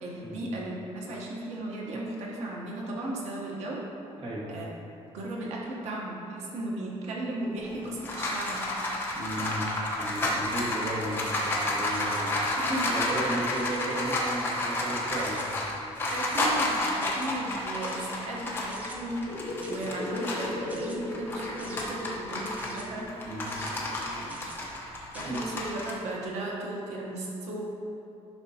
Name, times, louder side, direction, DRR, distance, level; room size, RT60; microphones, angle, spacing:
voice 1, 0.0-3.8 4.5-4.7 5.1-8.7 12.6-13.0 16.1-23.1 24.1-24.4 25.1-27.7, right 1 dB, 90° right, -3 dB, 1.1 m, -36 dB
sound 1, 7.6-20.6 21.0-25.9, left 1 dB, 20° left, 1.0 m, -31 dB
voice 2, 9.1-9.7 10.0-12.4 12.9-15.4 23.2-23.5 25.2-25.4, right 1 dB, 60° right, -5 dB, 1.8 m, -34 dB
sound 2, 11.9-12.3 12.6-12.9 13.5-13.9 14.3-14.7 15.2-15.5 16.1-16.5 17.0-17.3 17.8-18.1 18.7-19.0 19.6-19.9 20.7-21.0 21.6-21.9 22.6-22.9 23.5-23.7 24.3-24.6 25.1-25.4, right 1 dB, 15° right, 0.7 m, -48 dB
sound 3, 19.2-24.4, left 2 dB, 80° left, 1.0 m, -38 dB
10.5 x 5.7 x 2.9 m, 2.8 s
cardioid pair, 175°, 11 cm